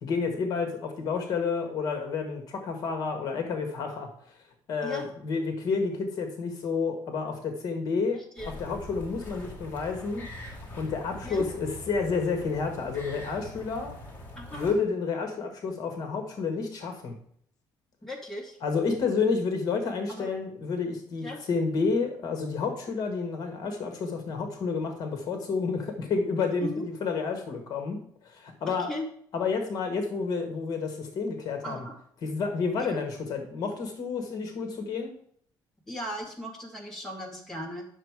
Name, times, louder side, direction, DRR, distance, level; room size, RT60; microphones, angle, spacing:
voice 1, 0.0-4.1 4.7-8.2 8.5-14.0 14.5-17.1 18.6-28.0 28.2-28.9 29.3-31.8 32.2-35.1, left 4 dB, 50° left, 5 dB, 1.5 m, -30 dB
voice 2, 8.1-8.5 11.2-11.5 14.4-14.7 18.0-18.6 20.1-20.3 21.2-21.4 26.6-26.9 28.9-29.0 31.6-32.0 32.8-33.0 35.9-37.9, left 1 dB, 5° left, -3 dB, 2.0 m, -37 dB
sound 1, 8.4-14.7, left 1 dB, 20° left, 2.2 m, -43 dB
10.0 x 6.5 x 4.8 m, 0.63 s
cardioid pair, 175°, 8 cm